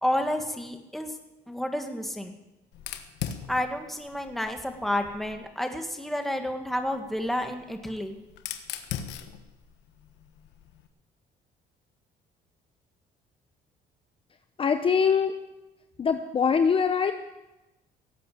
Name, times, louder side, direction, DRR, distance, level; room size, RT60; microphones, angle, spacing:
voice 1, 0.0-1.1 1.5-2.3 3.5-8.1, left 1 dB, ahead, 4 dB, 1.9 m, -30 dB
Fire, 2.7-5.5 6.6-10.9, left 10 dB, 85° left, 1.3 m, -40 dB
voice 2, 14.6-15.4 16.0-17.1, left 6 dB, 30° left, 8 dB, 0.8 m, -23 dB
18.0 x 8.4 x 7.8 m, 1.0 s
cardioid pair, 110°, 17 cm